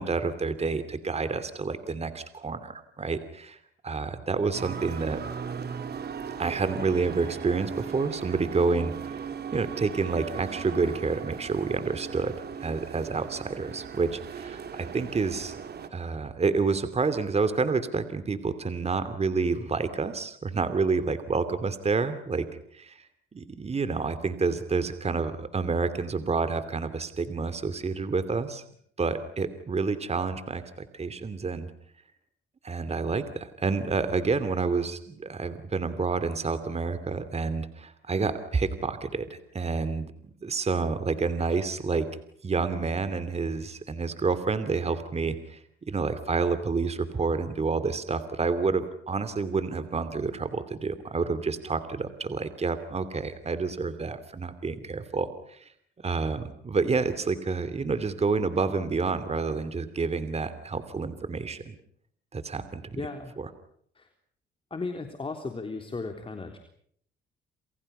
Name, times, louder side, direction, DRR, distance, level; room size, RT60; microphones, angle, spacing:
voice 1, 0.0-3.6 3.8-5.2 6.4-9.2 9.5-12.3 12.6-15.6 15.9-22.5 22.7-23.0 23.3-28.6 29.0-31.7 32.6-42.1 42.4-45.6 45.9-55.7 56.0-61.7 62.3-63.0 63.4-63.5, right 4 dB, 30° right, 12 dB, 2.7 m, -29 dB
sound 1, 4.5-15.9, right 6 dB, 55° right, 3.4 m, -38 dB
voice 2, 62.9-63.3 64.0-64.1 64.7-66.6, left 3 dB, 25° left, 5 dB, 3.7 m, -35 dB
28.5 x 28.0 x 5.6 m, 0.65 s
cardioid pair, 90°, 20 cm